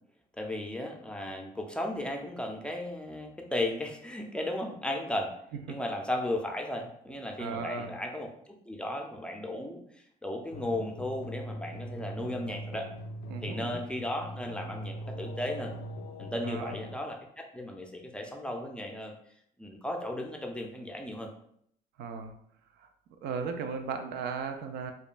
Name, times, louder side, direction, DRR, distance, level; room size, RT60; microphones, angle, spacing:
voice 1, 0.4-5.3 5.7-9.8 10.2-12.9 13.4-15.7 16.2-19.1 19.6-21.3, left 1 dB, 5° left, 2 dB, 0.5 m, -35 dB
voice 2, 7.4-7.9 13.3-13.8 16.4-16.8 22.0-22.3 22.8-22.9 23.2-24.9, right 5 dB, 75° right, 7 dB, 0.5 m, -36 dB
sound 1, 10.5-17.0, equal, 75° left, 0.4 m, -41 dB
5.0 x 2.3 x 2.5 m, 0.68 s
cardioid pair, 110°, 17 cm